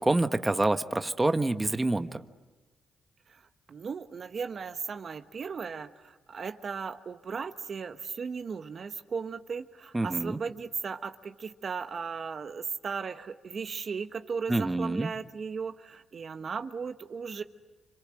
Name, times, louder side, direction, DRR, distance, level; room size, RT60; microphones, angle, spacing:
voice 1, 0.0-2.2 9.9-10.4 14.5-15.1, right 2 dB, 20° right, 8 dB, 1.4 m, -27 dB
voice 2, 3.7-17.4, right 5 dB, 55° right, 8 dB, 1.3 m, -36 dB
28.0 x 26.0 x 7.8 m, 1.2 s
supercardioid pair, 60°, 0 cm